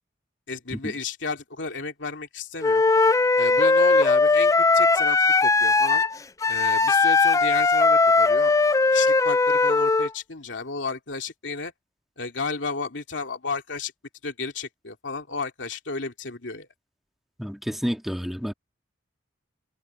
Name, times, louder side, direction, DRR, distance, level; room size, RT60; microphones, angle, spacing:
voice 1, 0.5-2.8 3.4-6.0 6.5-8.6 8.9-11.7 12.2-13.9 14.2-16.7, left 4 dB, 70° left, 3.1 m, -33 dB
Wind instrument woodwind instrument, 2.6-10.1, left 3 dB, 15° left, 0.3 m, -19 dB
voice 2, 17.4-18.5, equal, ahead, 2.1 m, -30 dB
head